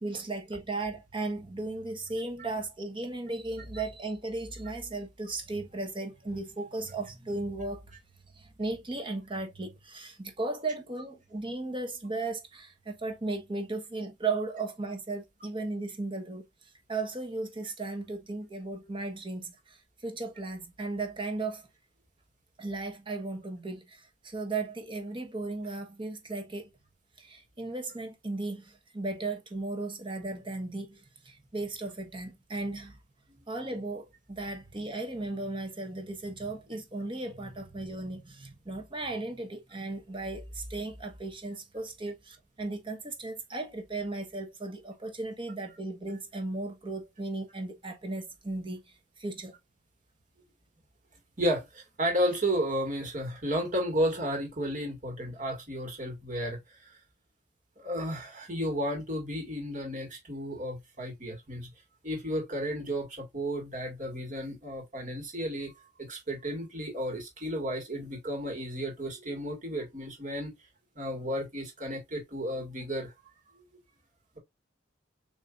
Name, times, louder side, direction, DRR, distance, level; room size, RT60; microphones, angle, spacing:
voice 1, 0.0-7.9 8.3-16.4 16.9-21.7 22.6-26.7 27.2-33.0 33.5-49.5, right 2 dB, 25° right, 1.2 m, -36 dB
voice 2, 51.4-56.9 57.8-61.7 62.0-70.6 71.0-73.1, equal, 45° right, 1.9 m, -33 dB
6.9 x 3.0 x 2.5 m
head